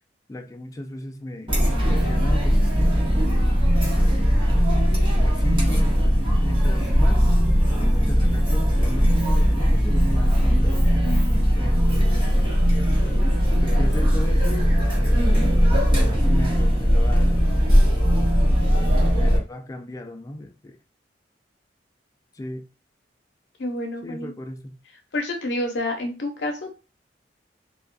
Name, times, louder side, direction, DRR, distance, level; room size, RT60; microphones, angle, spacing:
voice 1, 0.3-1.6 1.8-3.0 3.7-4.4 5.2-7.3 7.8-10.9 11.5-12.4 13.6-17.5 19.1-20.8 22.3-22.7 24.0-24.8, left 1 dB, 20° left, 0.3 m, -36 dB
Chatter, 1.5-19.4, equal, 30° right, 0.9 m, -19 dB
voice 2, 11.0-11.5 23.6-24.3 25.1-26.8, left 1 dB, 75° left, 0.6 m, -29 dB
2.3 x 2.2 x 2.4 m
head